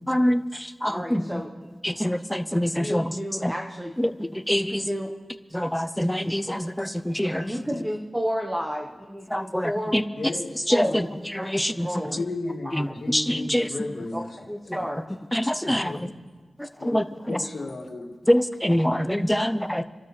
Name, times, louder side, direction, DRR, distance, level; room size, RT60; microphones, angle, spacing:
voice 1, 0.1-0.4 0.8-1.4 1.8-3.5 4.0-4.9 5.5-7.5 9.3-10.0 10.7-11.1 11.3-12.2 12.7-13.7 15.3-16.1 16.8-17.4 18.3-19.8, equal, 5° left, 11 dB, 0.7 m, -25 dB
voice 2, 0.9-1.7 2.7-3.9 4.5-5.1 7.4-10.0 10.7-11.1 11.4-12.2 12.7-13.0 14.1-15.0, equal, 10° right, 0 dB, 1.1 m, -31 dB
voice 3, 7.4-7.8 10.2-11.0 12.1-14.3 14.7-14.8 15.6-16.1 16.8-17.0 17.3-18.1, left 2 dB, 60° left, 0 dB, 2.3 m, -34 dB
27.0 x 12.5 x 3.3 m, 1.3 s
wide cardioid pair, 85°, 0 cm